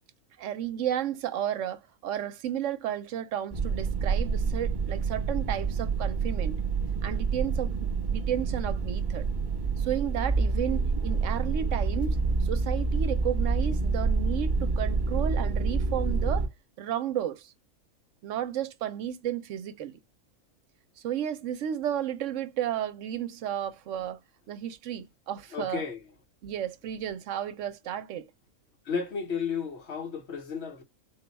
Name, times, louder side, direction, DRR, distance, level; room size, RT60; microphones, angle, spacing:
voice 1, 0.4-6.6 7.0-9.2 9.8-16.5 16.8-17.5 18.2-20.0 21.0-24.2 24.5-25.8 26.4-28.3, right 10 dB, 75° right, 0.9 m, -33 dB
sound 1, 3.5-16.5, right 4 dB, 40° right, 1.0 m, -28 dB
voice 2, 25.5-26.0 28.8-30.8, left 6 dB, 60° left, 1.1 m, -33 dB
4.3 x 2.2 x 3.9 m
omnidirectional pair, 1.3 m